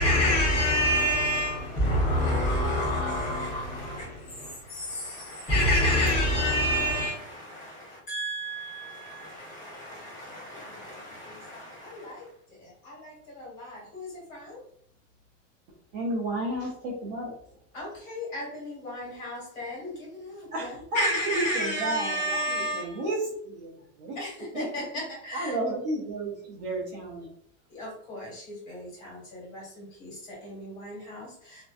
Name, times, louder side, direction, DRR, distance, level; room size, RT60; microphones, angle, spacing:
voice 1, 0.0-4.6 5.5-7.2, left 1 dB, 15° left, 0.7 m, -25 dB
voice 2, 1.6-4.2 4.5-14.6 17.7-23.0 24.1-25.6 27.7-31.6, equal, 40° left, 1.3 m, -36 dB
voice 3, 15.9-17.3 20.5-24.2 24.5-24.9 25.3-27.3, right 1 dB, 35° right, 0.5 m, -32 dB
2.6 x 2.1 x 2.3 m
supercardioid pair, 175°, 37 cm